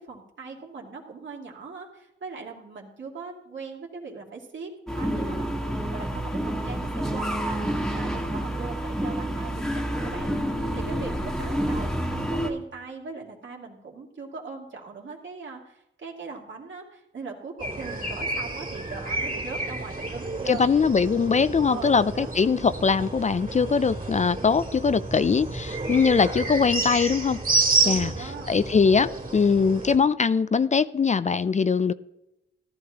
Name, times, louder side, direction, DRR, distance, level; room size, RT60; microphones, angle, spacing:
voice 1, 0.0-20.6 21.7-22.3 27.8-28.5, right 4 dB, 65° right, 2.7 m, -40 dB
sound 1, 4.9-12.5, right 1 dB, ahead, 1.6 m, -28 dB
sound 2, 17.6-30.0, right 2 dB, 40° right, 3.1 m, -30 dB
voice 2, 20.5-27.4 27.9-28.1 28.5-31.9, left 5 dB, 35° left, 0.4 m, -22 dB
14.5 x 12.5 x 2.9 m
cardioid pair, 75°, 20 cm